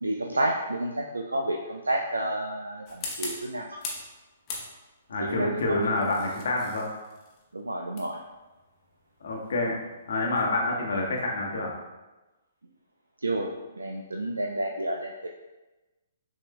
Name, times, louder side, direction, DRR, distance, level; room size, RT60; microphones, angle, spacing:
voice 1, 0.0-3.8 5.2-5.8 7.5-8.2 13.2-15.3, right 1 dB, 80° right, 1 dB, 0.4 m, -30 dB
sound 1, 2.9-4.1 4.5-5.1 5.8-10.6, left 4 dB, 30° left, 0.9 m, -40 dB
voice 2, 5.1-6.9 9.2-9.8 10.1-11.7, left 2 dB, 60° left, -1 dB, 1.0 m, -27 dB
6.6 x 3.6 x 2.2 m, 1.1 s
figure-of-eight pair, 120°, 0 cm